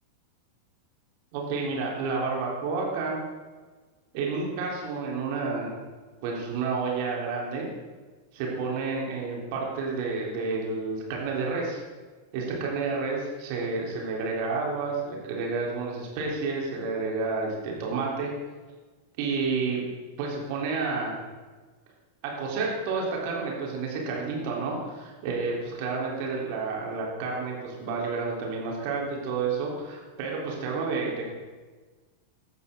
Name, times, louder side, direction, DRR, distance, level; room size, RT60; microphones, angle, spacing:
voice 1, 1.3-3.2 4.1-5.7 6.2-7.7 8.3-11.8 12.3-18.3 19.2-19.8 20.2-21.1 22.2-31.3, right 4 dB, 45° right, -2 dB, 3.7 m, -30 dB
15.5 x 11.0 x 3.8 m, 1.4 s
figure-of-eight pair, 90°, 0 cm